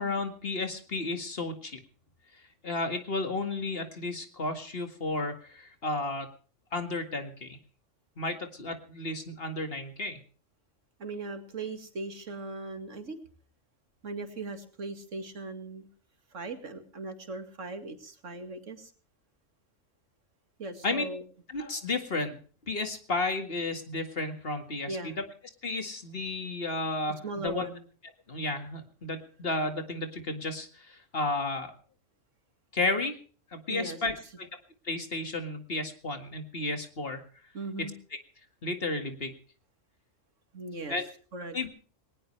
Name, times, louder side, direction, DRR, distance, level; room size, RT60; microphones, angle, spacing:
voice 1, 0.0-1.8 2.6-6.3 6.7-7.6 8.2-10.2 20.8-21.0 21.5-22.4 22.7-25.2 25.6-27.7 28.3-31.7 32.7-33.2 33.5-34.5 34.8-37.2 38.6-39.3 40.9-41.0 41.5-41.7, left 2 dB, 50° left, 7 dB, 2.1 m, -32 dB
voice 2, 11.0-13.2 14.0-15.9 16.3-18.9 20.6-21.2 24.9-25.2 27.2-27.8 33.7-34.0 37.5-37.9 40.5-41.0 41.3-41.7, right 2 dB, 80° right, 7 dB, 2.5 m, -38 dB
20.0 x 19.0 x 3.3 m, 0.42 s
omnidirectional pair, 1.3 m